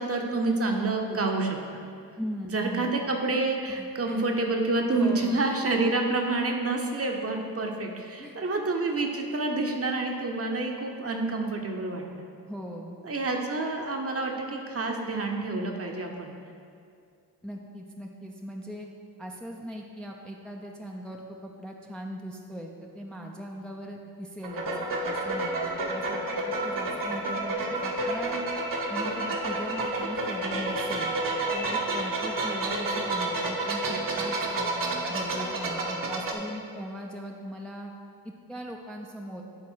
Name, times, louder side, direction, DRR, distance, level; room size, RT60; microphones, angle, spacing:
voice 1, 0.0-1.8 2.5-12.2 13.0-16.3, right 2 dB, 35° right, 2 dB, 1.0 m, -28 dB
voice 2, 2.2-2.9 3.7-4.2 5.0-5.4 8.2-8.4 12.5-13.0 17.4-18.9 19.2-24.7 25.0-25.6 25.9-28.4 28.9-31.1 31.5-37.9 38.2-39.4, equal, ahead, 0 dB, 0.6 m, -39 dB
sound 1, 24.4-36.3, right 2 dB, 55° right, 1.1 m, -30 dB
10.5 x 3.8 x 4.6 m, 2.3 s
cardioid pair, 65°, 40 cm